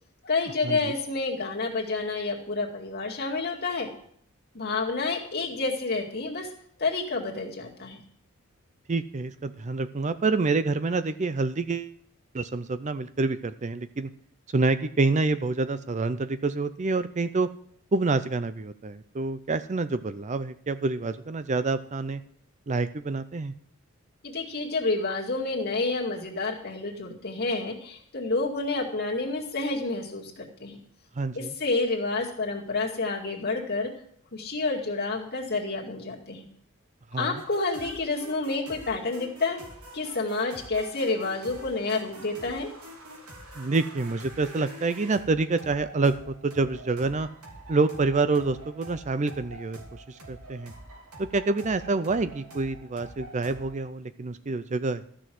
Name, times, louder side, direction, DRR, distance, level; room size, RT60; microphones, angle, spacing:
voice 1, 0.2-3.9 4.5-6.5 6.8-8.0 24.2-30.8 31.3-33.9 34.3-36.4 37.2-39.6 39.9-42.7, left 3 dB, 45° left, -1 dB, 2.2 m, -29 dB
voice 2, 8.9-11.9 12.3-14.1 14.5-17.5 17.9-22.2 22.7-23.5 31.2-31.5 37.1-37.4 43.6-46.1 46.4-47.3 47.7-50.7 51.2-55.0, right 3 dB, 35° right, 12 dB, 0.5 m, -27 dB
sound 1, 37.4-53.8, right 1 dB, 85° right, 3.0 m, -46 dB
13.5 x 6.3 x 7.7 m, 0.64 s
head